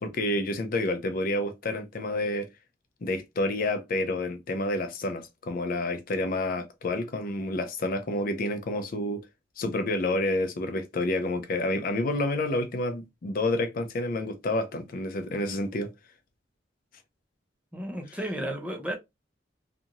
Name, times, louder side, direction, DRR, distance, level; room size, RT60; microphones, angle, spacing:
voice 1, 0.0-2.5 3.0-9.2 9.6-15.9 18.1-18.2, left 2 dB, 50° left, 0.4 m, -29 dB
voice 2, 17.7-18.9, right 1 dB, 5° right, 0.6 m, -33 dB
2.6 x 2.5 x 2.8 m
head